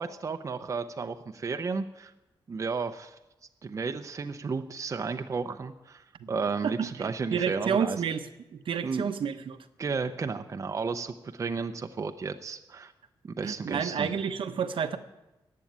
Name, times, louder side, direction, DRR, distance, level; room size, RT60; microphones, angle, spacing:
voice 1, 0.0-2.1 2.5-3.1 3.6-6.0 6.3-8.0 8.8-9.1 9.8-12.9 13.4-14.1, right 4 dB, 35° right, 7 dB, 0.6 m, -33 dB
voice 2, 6.6-8.3 8.5-9.7 13.4-15.0, right 7 dB, 70° right, 8 dB, 0.9 m, -30 dB
14.5 x 8.5 x 9.4 m, 1.0 s
wide cardioid pair, 160°, 9 cm